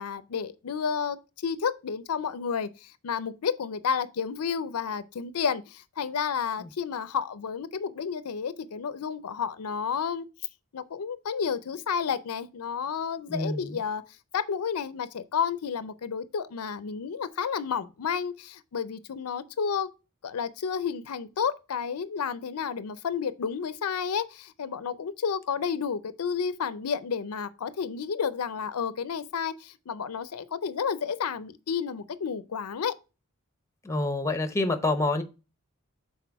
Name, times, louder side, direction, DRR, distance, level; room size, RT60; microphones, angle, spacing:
voice 1, 0.0-10.3 10.7-14.0 14.3-19.9 20.2-32.9, left 6 dB, 80° left, 0.5 m, -31 dB
voice 2, 13.3-13.6 33.8-35.2, left 2 dB, 15° left, 0.7 m, -27 dB
6.0 x 4.1 x 4.6 m
head